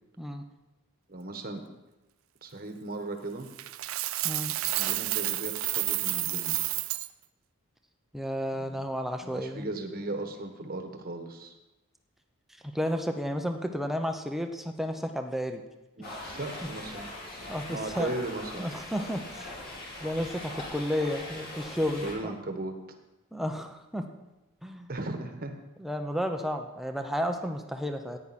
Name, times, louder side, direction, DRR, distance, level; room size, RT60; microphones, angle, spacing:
voice 1, 1.1-1.6 2.4-3.5 4.8-6.6 8.6-8.8 9.2-11.5 16.0-17.1 17.7-18.8 22.0-22.7 24.9-25.5, right 2 dB, 40° right, 6 dB, 1.3 m, -37 dB
Coin (dropping), 3.6-7.1, right 17 dB, 65° right, 0.4 m, -30 dB
voice 2, 8.1-9.7 12.7-15.6 16.1-16.2 17.5-18.1 18.6-19.5 20.0-22.4 23.3-24.1 24.6-24.9 25.8-28.2, equal, ahead, 5 dB, 0.8 m, -32 dB
sound 1, 16.0-22.1, left 1 dB, 45° left, 2.9 m, -41 dB
14.5 x 9.8 x 4.3 m, 1.0 s
head